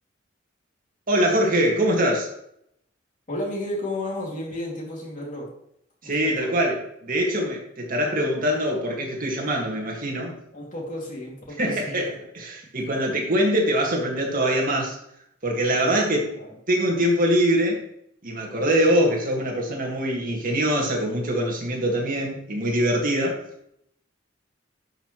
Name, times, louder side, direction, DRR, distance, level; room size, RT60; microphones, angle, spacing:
voice 1, 1.1-2.3 6.0-10.3 11.6-15.0 15.4-16.3 16.7-17.8 18.2-23.4, right 1 dB, 45° right, 0 dB, 2.1 m, -23 dB
voice 2, 3.3-5.5 6.0-6.6 10.5-12.0 15.7-15.9 16.3-16.5, left 1 dB, 45° left, -2 dB, 2.7 m, -33 dB
11.5 x 5.8 x 3.2 m, 0.74 s
head